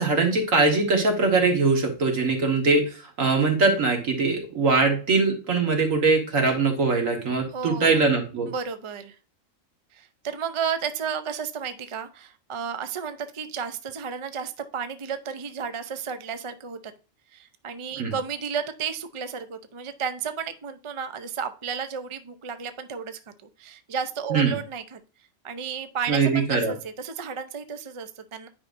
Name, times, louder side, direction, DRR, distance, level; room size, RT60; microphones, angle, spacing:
voice 1, 0.0-8.5 18.0-18.1 24.3-24.6 26.1-26.7, right 4 dB, 75° right, 2 dB, 2.0 m, -22 dB
voice 2, 7.5-8.0 8.5-9.2 9.9-16.9 17.3-23.2 23.6-25.0 25.4-28.5, right 6 dB, 45° right, 9 dB, 0.4 m, -33 dB
9.8 x 5.2 x 2.6 m, 0.36 s
omnidirectional pair, 1.4 m